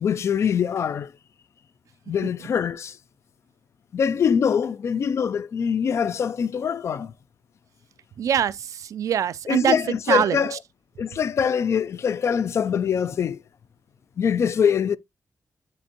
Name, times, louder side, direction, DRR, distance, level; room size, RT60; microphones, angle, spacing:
voice 1, 0.0-1.1 2.1-3.0 3.9-7.1 9.5-10.6 11.0-13.4 14.2-15.0, left 7 dB, 55° left, 0.3 m, -23 dB
voice 2, 8.2-9.8 10.1-10.6, right 9 dB, 80° right, 0.4 m, -23 dB
9.7 x 3.4 x 2.8 m
wide cardioid pair, 160°, 6 cm